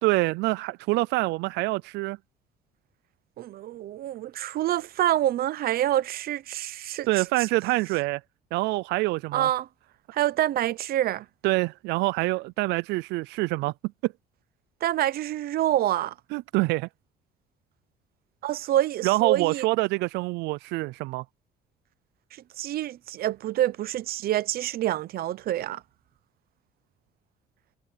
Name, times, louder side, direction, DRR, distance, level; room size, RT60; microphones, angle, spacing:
voice 1, 0.0-2.2 7.1-8.2 8.5-9.5 11.4-13.7 14.0-14.1 16.3-16.9 19.0-21.2, right 21 dB, 85° right, 0.4 m, -26 dB
voice 2, 3.4-7.2 9.3-9.7 10.1-11.3 14.8-16.1 18.4-19.6 22.6-25.8, right 13 dB, 65° right, 0.8 m, -27 dB
cardioid pair, 110°, 17 cm